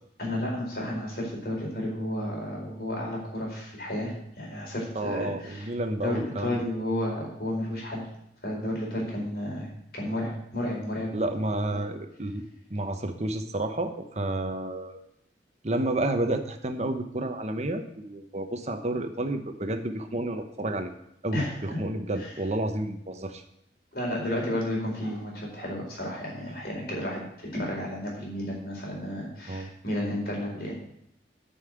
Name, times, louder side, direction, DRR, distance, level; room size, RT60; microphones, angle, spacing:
voice 1, 0.2-5.7 6.0-8.1 8.4-11.1 11.7-11.8 21.3-21.6 22.2-22.3 23.9-27.2 27.5-30.7, left 1 dB, 55° left, -2 dB, 4.4 m, -32 dB
voice 2, 4.9-6.7 11.1-12.4 12.7-15.0 15.6-20.9 21.2-23.4 29.5-29.7, right 1 dB, 40° right, 7 dB, 1.0 m, -30 dB
9.7 x 5.6 x 8.0 m, 0.75 s
head